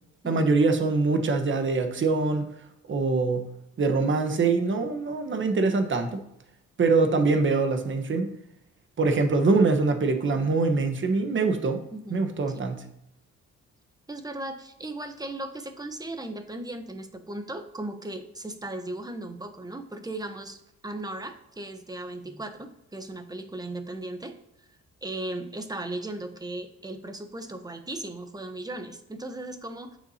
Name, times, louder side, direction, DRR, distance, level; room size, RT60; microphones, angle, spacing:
voice 1, 0.2-2.5 2.9-3.5 3.8-6.2 6.8-8.3 9.0-11.8 12.1-12.8, right 3 dB, 40° right, 6 dB, 1.2 m, -24 dB
voice 2, 11.9-12.3 12.5-12.6 14.1-24.4 25.0-30.0, right 2 dB, 15° right, 7 dB, 0.9 m, -37 dB
8.0 x 7.2 x 2.8 m, 0.81 s
cardioid pair, 90°, 30 cm